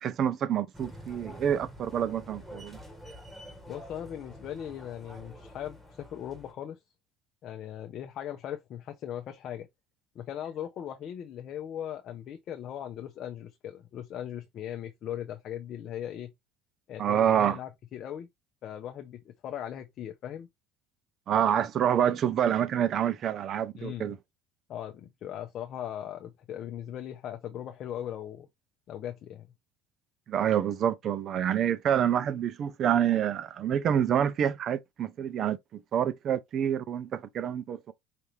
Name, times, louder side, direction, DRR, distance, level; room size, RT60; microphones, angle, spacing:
voice 1, 0.0-2.8 17.0-17.6 21.3-24.2 30.3-37.9, right 9 dB, 45° right, 0.5 m, -27 dB
sound 1, 0.7-6.5, equal, 5° right, 1.6 m, -47 dB
voice 2, 3.7-6.8 7.4-9.7 10.1-16.3 16.9-18.3 18.6-20.5 23.7-24.2 24.7-28.5 28.9-29.5, left 10 dB, 45° left, 0.7 m, -39 dB
5.1 x 2.8 x 3.2 m
cardioid pair, 130°, 0 cm